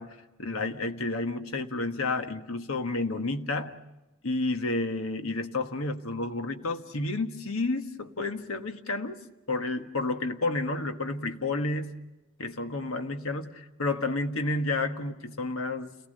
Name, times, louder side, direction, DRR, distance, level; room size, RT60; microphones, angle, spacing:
voice 1, 0.0-3.8 4.2-9.2 9.5-11.9 12.4-15.9, left 2 dB, 70° left, 1.5 m, -31 dB
29.5 x 19.0 x 6.7 m
head